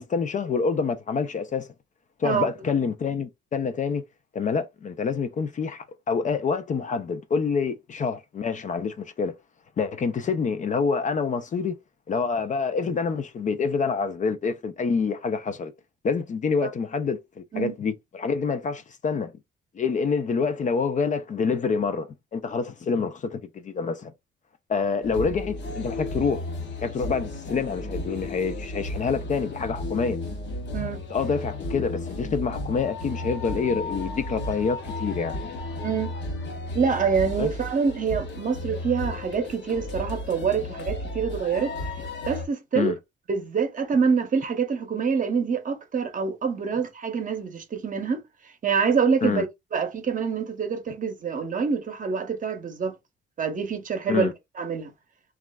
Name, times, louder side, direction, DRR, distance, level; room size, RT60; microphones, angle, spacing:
voice 1, 0.0-1.7 2.2-4.0 4.3-9.3 9.8-11.8 12.1-15.7 16.0-19.3 19.7-24.1 24.7-26.5 26.8-30.2 31.1-35.4 37.4-37.5 42.7-43.0 49.2-49.5 54.1-54.3, left 5 dB, 40° left, 0.4 m, -27 dB
sound 1, 25.0-42.5, left 2 dB, 60° left, 0.9 m, -34 dB
voice 2, 36.7-41.7 42.3-42.9 43.3-48.2 48.6-49.4 49.7-52.9 53.4-54.3 54.6-54.9, right 6 dB, 40° right, 0.7 m, -26 dB
3.0 x 2.4 x 2.2 m
cardioid pair, 90°, 20 cm